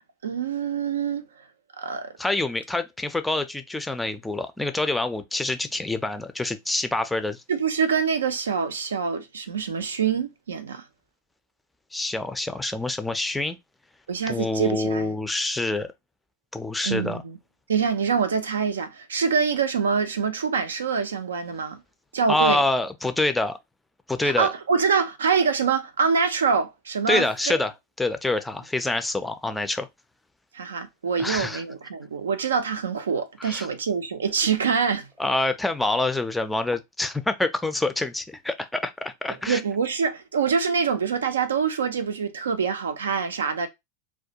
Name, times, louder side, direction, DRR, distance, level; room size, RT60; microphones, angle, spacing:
voice 1, 0.2-1.2 1.8-2.1 7.5-10.8 14.1-15.1 16.8-17.4 17.7-21.8 22.1-22.6 24.2-27.3 30.5-35.1 39.5-43.7, right 6 dB, 90° right, 0.4 m, -25 dB
voice 2, 2.2-7.4 11.9-13.6 14.3-15.9 16.5-17.2 22.3-23.6 24.1-24.5 27.1-27.7 28.0-29.9 31.2-31.6 33.4-33.7 35.2-39.6, left 2 dB, 5° left, 0.4 m, -26 dB
2.3 x 2.1 x 2.7 m
hypercardioid pair, 105°, 0 cm